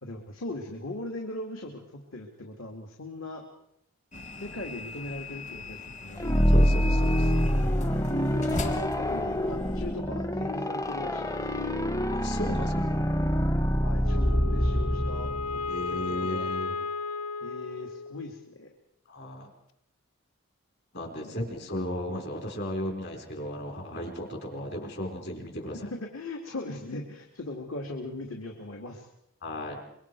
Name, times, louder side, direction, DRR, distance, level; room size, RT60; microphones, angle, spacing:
voice 1, 0.0-1.9 2.1-3.4 4.4-6.3 7.3-7.4 8.3-11.4 13.8-16.5 17.4-18.7 21.0-21.3 26.0-29.1, left 2 dB, 70° left, 2 dB, 2.5 m, -39 dB
sound 1, 4.1-10.0, left 2 dB, 35° left, 1.2 m, -39 dB
sound 2, 6.2-15.9, equal, 15° left, 0.7 m, -26 dB
voice 2, 6.5-7.3 12.1-12.9 15.7-16.8 19.1-19.5 20.9-25.9 29.4-29.8, left 1 dB, 50° left, 3 dB, 4.6 m, -35 dB
Wind instrument woodwind instrument, 14.0-18.5, left 4 dB, 85° left, 0.9 m, -34 dB
25.5 x 23.0 x 4.8 m, 0.78 s
head